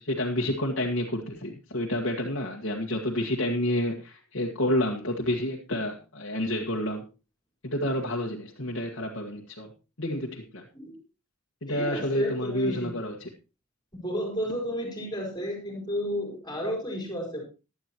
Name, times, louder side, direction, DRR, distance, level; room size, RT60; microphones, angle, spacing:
voice 1, 0.0-7.1 7.6-9.7 10.0-10.6 11.6-13.3, left 1 dB, 60° left, -1 dB, 1.7 m, -29 dB
voice 2, 11.7-12.9 13.9-17.4, equal, 20° left, 1 dB, 4.4 m, -32 dB
15.5 x 11.5 x 3.0 m, 0.31 s
head